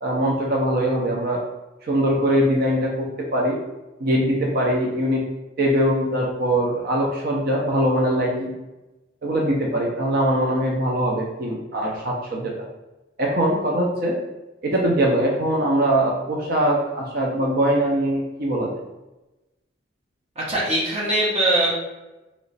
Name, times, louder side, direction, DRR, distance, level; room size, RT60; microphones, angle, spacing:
voice 1, 0.0-1.4 1.8-3.6 4.0-5.2 5.6-8.5 9.2-12.5 13.2-14.1 14.6-18.7, right 1 dB, 50° right, -1 dB, 0.6 m, -22 dB
voice 2, 20.4-21.7, right 1 dB, 35° right, -5 dB, 1.1 m, -21 dB
3.1 x 3.0 x 4.0 m, 1.0 s
head